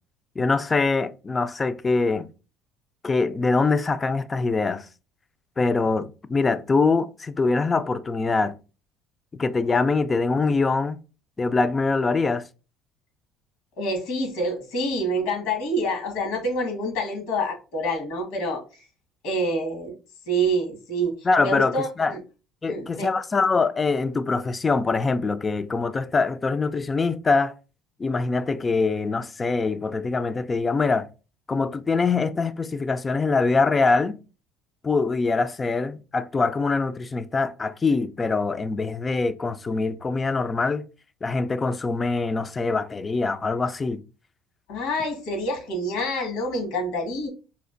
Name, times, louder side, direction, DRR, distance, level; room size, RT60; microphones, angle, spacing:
voice 1, 0.4-2.3 3.0-4.9 5.6-8.5 9.4-11.0 11.4-12.4 21.2-22.1 22.6-27.5 28.0-31.1 31.5-34.1 34.8-40.8 41.2-44.0, left 4 dB, 25° left, 0.3 m, -23 dB
voice 2, 13.8-18.9 19.2-19.9 20.3-22.2 22.7-23.1 44.7-47.3, right 1 dB, 80° left, 1.4 m, -27 dB
4.2 x 2.4 x 2.5 m
supercardioid pair, 95°, 0 cm